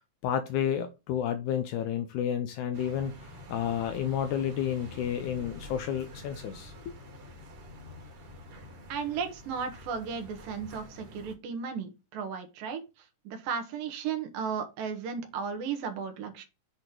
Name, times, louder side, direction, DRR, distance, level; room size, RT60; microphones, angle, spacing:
voice 1, 0.2-6.9, left 9 dB, 80° left, 1.8 m, -31 dB
sound 1, 2.7-11.3, left 1 dB, 50° right, 2.0 m, -47 dB
voice 2, 8.9-12.8 13.2-16.5, right 6 dB, 80° right, 2.9 m, -35 dB
8.2 x 3.0 x 5.0 m
omnidirectional pair, 4.0 m